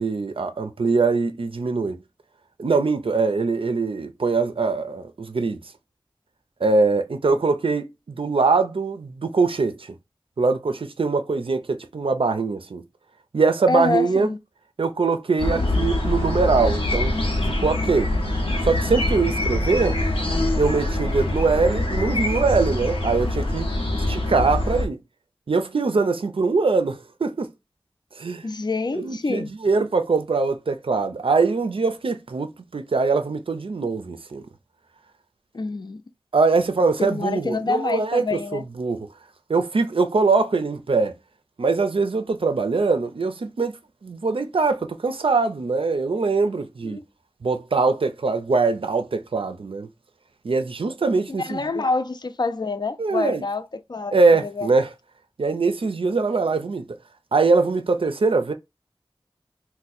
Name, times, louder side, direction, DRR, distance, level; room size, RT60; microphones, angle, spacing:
voice 1, 0.0-2.0 2.6-5.6 6.6-9.9 10.4-12.8 13.3-14.3 14.8-18.1 18.6-20.0 20.6-23.7 24.1-25.0 25.5-27.5 28.2-28.4 28.9-34.4 36.3-39.1 39.5-41.2 41.6-43.8 44.0-47.0 47.4-49.9 50.4-51.6 53.0-53.4 54.1-54.9 55.4-56.9 57.3-58.5, right 4 dB, 75° right, 0.4 m, -22 dB
voice 2, 13.7-14.4 24.0-24.1 28.4-29.5 35.5-36.0 37.0-38.6 46.8-47.0 51.3-54.1 54.4-54.7, left 3 dB, 50° left, 0.4 m, -27 dB
sound 1, 15.4-24.8, left 1 dB, 85° left, 0.8 m, -24 dB
2.6 x 2.1 x 4.0 m
wide cardioid pair, 50°, 9 cm